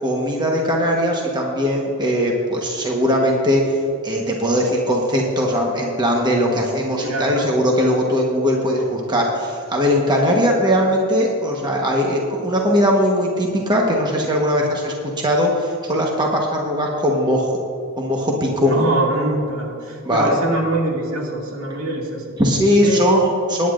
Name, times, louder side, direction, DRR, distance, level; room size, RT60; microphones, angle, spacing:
voice 1, 0.0-3.8 4.0-17.5 18.0-18.8 20.0-20.4 22.4-23.7, equal, 20° right, -1 dB, 1.1 m, -19 dB
voice 2, 7.0-7.5 18.6-22.2 22.8-23.0, right 1 dB, 75° right, -2 dB, 2.3 m, -24 dB
19.0 x 9.6 x 2.5 m, 2.4 s
head